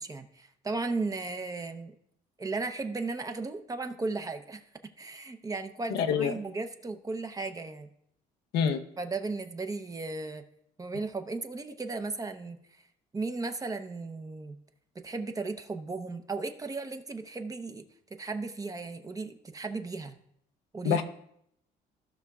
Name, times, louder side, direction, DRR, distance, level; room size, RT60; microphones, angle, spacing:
voice 1, 0.0-1.9 2.4-4.6 5.0-7.9 9.0-10.4 10.8-12.6 13.1-14.6 14.9-17.8 18.1-20.2 20.7-21.0, right 3 dB, 20° right, 7 dB, 0.7 m, -35 dB
voice 2, 5.9-6.3 8.5-8.8 20.8-21.0, left 7 dB, 85° left, 6 dB, 0.8 m, -26 dB
16.0 x 5.9 x 2.3 m, 0.72 s
cardioid pair, 110°, 17 cm